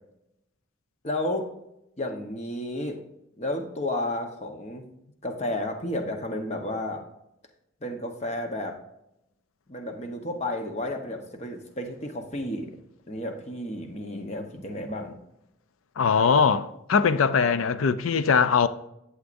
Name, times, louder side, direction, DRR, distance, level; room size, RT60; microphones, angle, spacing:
voice 1, 1.0-1.5 2.0-3.0 3.4-4.9 5.2-7.0 7.8-8.8 9.7-12.7 13.1-15.2, left 1 dB, 35° left, 1.0 m, -32 dB
voice 2, 16.0-18.7, left 6 dB, 90° left, 0.5 m, -21 dB
11.5 x 7.9 x 2.6 m
head